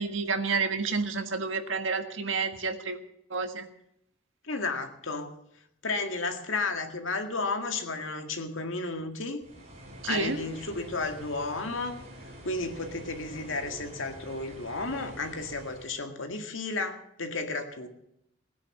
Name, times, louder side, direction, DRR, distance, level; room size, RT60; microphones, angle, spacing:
voice 1, 0.0-3.0 3.3-3.6 10.0-10.4, right 4 dB, 80° right, 7 dB, 1.6 m, -29 dB
voice 2, 4.4-5.3 5.8-9.4 10.1-12.0 12.4-17.9, left 3 dB, 85° left, 5 dB, 2.0 m, -33 dB
sound 1, 9.4-15.9, equal, 35° right, 4.3 m, -47 dB
17.5 x 9.8 x 7.3 m, 0.77 s
head